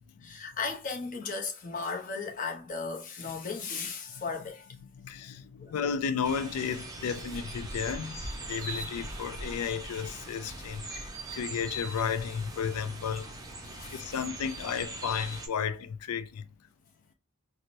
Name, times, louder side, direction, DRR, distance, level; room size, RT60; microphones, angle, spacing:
voice 1, 0.0-4.7 5.6-5.7 8.6-8.8 13.6-14.0, left 4 dB, 35° left, 0.6 m, -36 dB
voice 2, 4.8-13.4 13.7-16.5, left 7 dB, 90° left, 0.4 m, -33 dB
sound 1, 6.2-15.5, right 1 dB, 15° right, 0.5 m, -41 dB
4.4 x 2.0 x 2.6 m
head